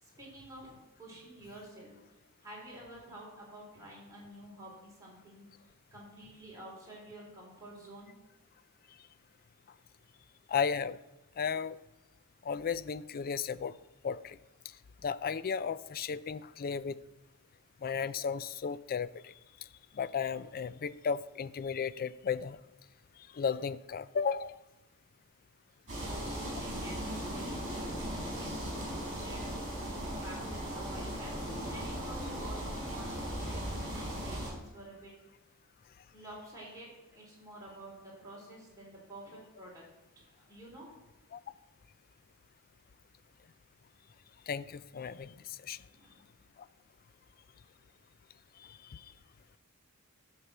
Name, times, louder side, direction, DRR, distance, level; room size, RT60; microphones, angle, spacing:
voice 1, 0.0-0.7 1.0-1.9 2.4-8.1 25.9-29.5 30.1-31.3 31.7-35.1 36.1-39.8 40.2-40.9 45.8-46.2, right 1 dB, 15° right, -5 dB, 3.7 m, -50 dB
voice 2, 10.5-11.0 11.4-11.8 12.4-13.8 14.0-14.4 15.0-17.0 17.8-19.3 19.9-22.6 23.3-24.6 41.3-41.4 44.5-45.8 48.6-49.1, left 6 dB, 40° left, 16 dB, 0.4 m, -34 dB
sound 1, 25.9-34.5, equal, 35° right, 4.2 m, -38 dB
13.0 x 4.6 x 6.6 m, 0.99 s
head